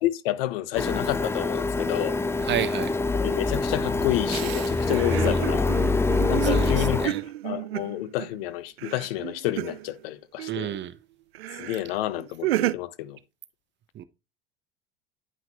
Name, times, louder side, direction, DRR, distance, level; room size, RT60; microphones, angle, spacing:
voice 1, 0.0-2.2 3.2-5.7 6.3-7.1 7.4-10.7 11.6-13.2, left 15 dB, 75° left, 0.9 m, -29 dB
Printer, 0.8-7.1, left 3 dB, 10° left, 0.4 m, -25 dB
voice 2, 2.4-2.9 5.1-5.4 6.4-7.2 10.5-11.0 13.9-14.0, right 10 dB, 40° right, 1.0 m, -31 dB
sound 1, 2.8-3.0 4.3-8.4 8.8-10.1 10.4-10.8 11.3-11.8 12.1-12.7, right 15 dB, 85° right, 0.5 m, -32 dB
9.6 x 5.8 x 2.9 m
hypercardioid pair, 90°, 29 cm